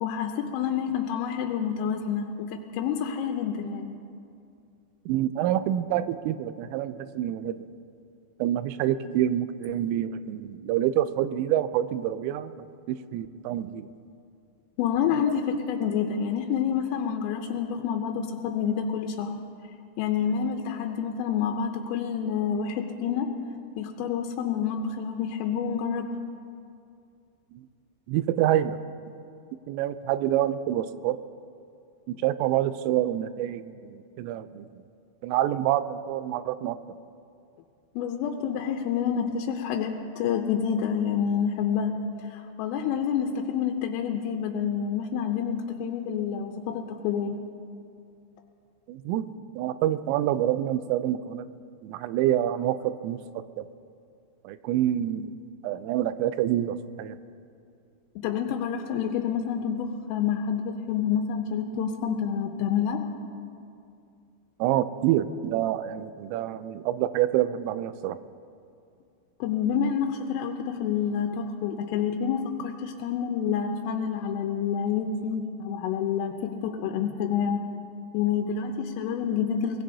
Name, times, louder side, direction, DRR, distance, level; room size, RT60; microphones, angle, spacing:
voice 1, 0.0-3.9 14.8-19.4 20.0-23.3 23.8-26.1 38.0-42.0 42.3-47.4 58.2-63.1 69.4-77.7 78.1-79.8, left 7 dB, 85° left, 3 dB, 3.3 m, -28 dB
voice 2, 5.1-7.6 8.4-13.9 27.5-27.7 28.1-28.8 29.7-31.2 32.1-34.7 35.2-36.8 48.9-49.3 49.6-51.5 51.8-53.7 54.4-55.3 55.6-57.2 64.6-68.2, right 12 dB, 90° right, 12 dB, 3.2 m, -27 dB
22.5 x 21.5 x 2.7 m, 2.4 s
omnidirectional pair, 5.7 m